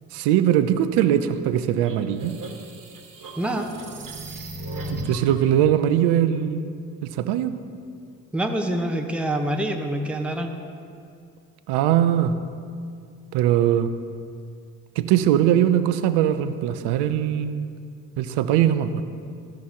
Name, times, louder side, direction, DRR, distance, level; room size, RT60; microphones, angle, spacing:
voice 1, 0.1-2.3 4.9-6.7 7.0-7.5 11.7-12.3 13.3-13.9 15.0-17.7 18.2-19.0, right 11 dB, 70° right, 11 dB, 0.7 m, -21 dB
sound 1, 1.8-5.3, right 1 dB, 50° right, 1.5 m, -36 dB
voice 2, 3.4-3.7 8.3-10.6, right 1 dB, 5° right, 3 dB, 1.0 m, -26 dB
14.0 x 6.2 x 2.9 m, 2.3 s
hypercardioid pair, 45°, 41 cm